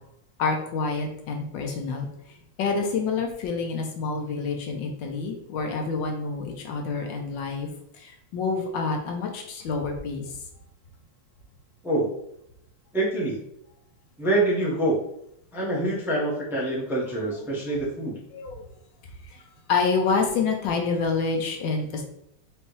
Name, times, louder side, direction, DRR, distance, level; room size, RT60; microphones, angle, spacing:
voice 1, 0.4-2.1 2.6-7.7 7.9-10.3 18.3-18.6 19.3-19.4 19.7-22.0, left 4 dB, 75° left, 3 dB, 1.4 m, -27 dB
voice 2, 12.9-13.4 14.2-15.0 15.5-18.2, right 1 dB, ahead, -5 dB, 0.8 m, -25 dB
4.5 x 3.1 x 3.2 m, 0.75 s
omnidirectional pair, 2.1 m